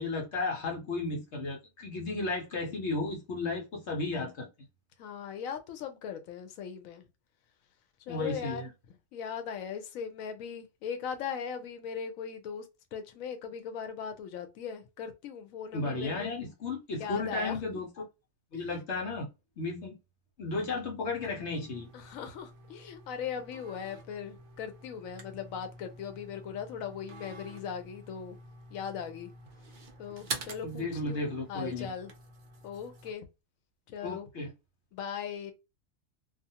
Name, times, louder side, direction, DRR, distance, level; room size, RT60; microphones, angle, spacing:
voice 1, 0.0-4.5 8.1-8.7 15.7-18.0 18.5-19.3 19.6-19.9 20.4-21.9 30.6-31.9 34.0-34.5, left 3 dB, 60° left, 1.0 m, -34 dB
voice 2, 5.0-7.0 8.1-8.6 9.1-12.7 12.9-16.3 17.0-17.6 18.5-18.7 21.9-28.4 28.7-29.3 30.0-32.1 32.6-33.2 33.9-34.3 34.9-35.5, left 7 dB, 90° left, 1.0 m, -39 dB
sound 1, 21.1-33.1, right 3 dB, 60° right, 0.5 m, -47 dB
2.4 x 2.3 x 2.7 m
omnidirectional pair, 1.4 m